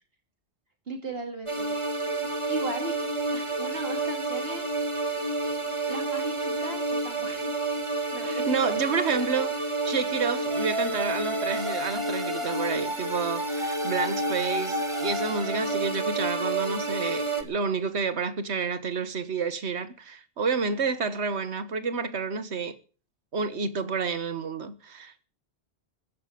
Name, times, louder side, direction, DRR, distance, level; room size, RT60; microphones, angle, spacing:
voice 1, 0.9-1.8 2.5-3.0 3.3-4.8 5.9-7.7 8.1-9.0, right 3 dB, 65° right, 2.8 m, -37 dB
sound 1, 1.5-17.4, right 2 dB, 30° right, 2.0 m, -29 dB
voice 2, 8.3-22.8 23.3-25.3, right 5 dB, 85° right, 1.6 m, -30 dB
14.5 x 8.5 x 9.1 m
omnidirectional pair, 1.1 m